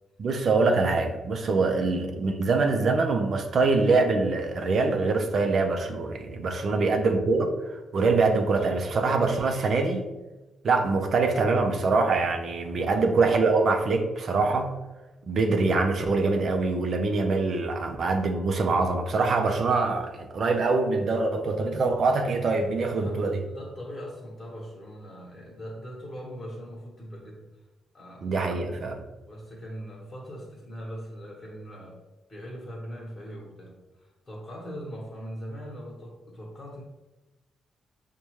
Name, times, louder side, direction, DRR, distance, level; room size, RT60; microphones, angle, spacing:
voice 1, 0.2-10.0 10.6-14.7 15.2-23.4 28.2-29.0, right 3 dB, 60° right, 4 dB, 0.5 m, -24 dB
voice 2, 6.6-7.1 12.8-13.0 22.9-27.4 27.9-28.5 29.3-32.0 32.3-36.8, equal, 25° left, -4 dB, 1.1 m, -41 dB
5.1 x 2.2 x 3.1 m, 1.1 s
cardioid pair, 65°, 0 cm